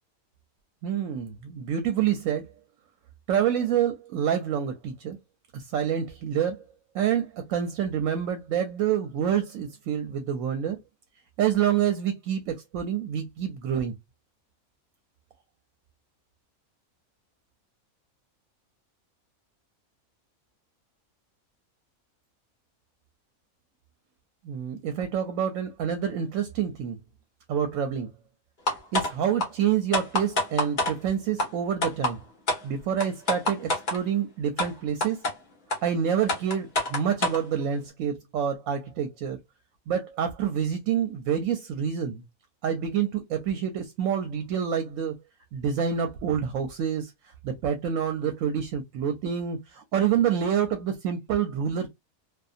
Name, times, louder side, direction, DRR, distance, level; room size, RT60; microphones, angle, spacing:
voice 1, 0.8-2.5 3.3-5.2 5.5-6.6 6.9-10.8 11.4-14.0 24.4-27.0 27.5-28.1 28.9-32.2 32.6-35.2 35.8-39.4 39.9-42.2 42.6-45.1 45.5-51.9, right 8 dB, 75° right, 0.9 m, -27 dB
sound 1, 28.7-29.1 29.4-29.5 29.9-30.9 31.4-31.5 31.8-32.1 32.5-32.6 33.0-34.0 34.6-34.7 35.0-35.3 35.7-35.8 36.3-37.4, left 2 dB, 35° left, 0.9 m, -25 dB
2.6 x 2.5 x 2.4 m
omnidirectional pair, 1.5 m